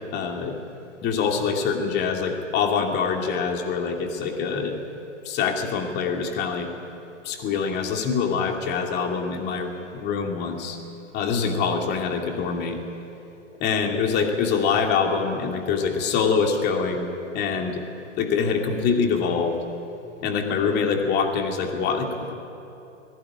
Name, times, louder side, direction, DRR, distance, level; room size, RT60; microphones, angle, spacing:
voice 1, 0.1-0.6 1.0-4.8 5.2-6.7 7.2-10.8 11.1-12.8 13.6-17.1 17.3-17.8 18.2-19.6 20.2-22.3, left 5 dB, 25° left, 3 dB, 2.7 m, -24 dB
20.5 x 17.0 x 9.9 m, 2.9 s
hypercardioid pair, 125°, 38 cm